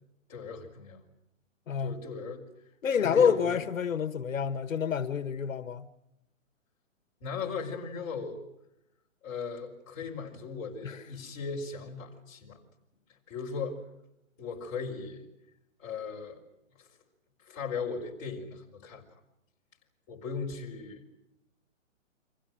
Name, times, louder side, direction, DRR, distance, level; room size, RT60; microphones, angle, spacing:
voice 1, 0.3-1.0 1.8-2.4 2.9-3.6 7.2-8.4 9.2-12.6 13.3-13.8 14.4-15.2 15.8-16.4 16.8-16.9 17.5-19.0 20.1-21.0, left 5 dB, 25° left, -2 dB, 4.7 m, -37 dB
voice 2, 1.7-2.0 2.8-5.9 10.8-11.0, left 7 dB, 80° left, 12 dB, 1.5 m, -28 dB
30.0 x 25.0 x 6.3 m, 0.84 s
hypercardioid pair, 170°, 39 cm